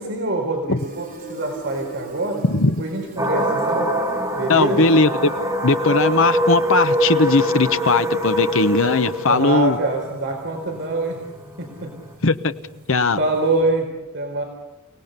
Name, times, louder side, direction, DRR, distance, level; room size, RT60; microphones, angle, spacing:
voice 1, 0.0-2.4 2.8-3.9 4.4-4.9 9.3-11.2 11.6-11.9 13.2-13.9 14.1-14.4, right 2 dB, 60° right, 1 dB, 4.4 m, -24 dB
Fill (with liquid), 0.8-13.9, right 1 dB, 45° right, 7.3 m, -43 dB
voice 2, 2.5-2.8 4.5-5.3 5.6-9.8 12.2-12.4 12.9-13.2, left 3 dB, 65° left, 10 dB, 1.0 m, -18 dB
sound 1, 3.2-12.1, equal, 15° right, 4.1 m, -23 dB
29.5 x 18.5 x 6.8 m, 1.0 s
head